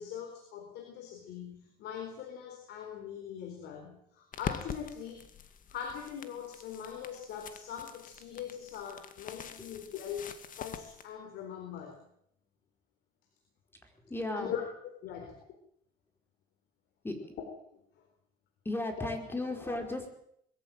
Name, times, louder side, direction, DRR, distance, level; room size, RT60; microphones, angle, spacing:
voice 1, 0.0-5.3 5.7-12.0 14.3-14.6 15.0-15.5 18.0-18.1 19.0-19.1 19.7-19.8, left 8 dB, 80° left, 4 dB, 4.2 m, -41 dB
sound 1, 4.3-11.0, left 8 dB, 55° left, 2.2 m, -44 dB
voice 2, 13.8-14.5 15.2-15.3 17.0-17.1 18.6-20.1, left 2 dB, 15° left, 5 dB, 5.0 m, -36 dB
22.0 x 14.5 x 9.2 m, 0.72 s
cardioid pair, 110°, 17 cm